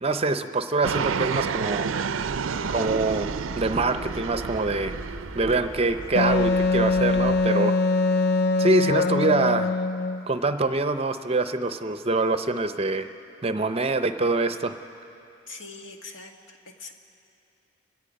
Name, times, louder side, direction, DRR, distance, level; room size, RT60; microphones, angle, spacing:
voice 1, 0.0-1.9 2.7-5.0 5.3-7.8 8.6-9.8 10.3-13.1 13.4-14.8, right 3 dB, 30° right, 10 dB, 0.6 m, -25 dB
Fixed-wing aircraft airplane, 0.8-6.2, right 6 dB, 85° right, 0.5 m, -30 dB
sound 1, 2.2-7.5, equal, 5° left, 0.9 m, -40 dB
Wind instrument woodwind instrument, 6.1-10.2, left 3 dB, 50° left, 0.4 m, -23 dB
voice 2, 15.5-16.9, left 3 dB, 70° left, 3 dB, 1.7 m, -42 dB
30.0 x 17.0 x 5.3 m, 2.8 s
head